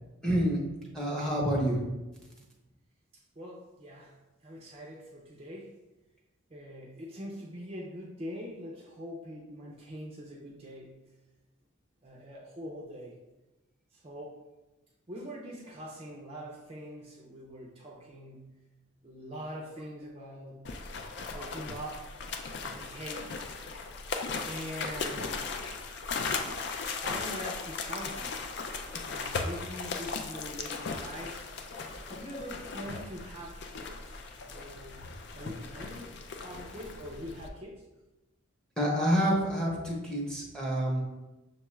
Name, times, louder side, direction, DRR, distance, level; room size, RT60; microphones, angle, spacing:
voice 1, 0.2-0.6 0.9-1.8 21.3-21.5 21.8-21.9 38.8-41.0, equal, 5° left, -4 dB, 0.7 m, -28 dB
voice 2, 3.1-5.7 6.5-11.0 12.0-13.2 13.9-14.4 15.1-18.5 19.0-20.7 21.3-22.0 22.6-23.3 24.5-25.5 26.9-28.4 29.0-31.5 32.1-34.2 34.5-36.1 36.4-37.9, equal, 30° right, -2 dB, 0.4 m, -43 dB
sound 1, 20.6-37.5, left 4 dB, 55° left, 0.3 m, -37 dB
6.3 x 2.3 x 3.0 m, 1.1 s
head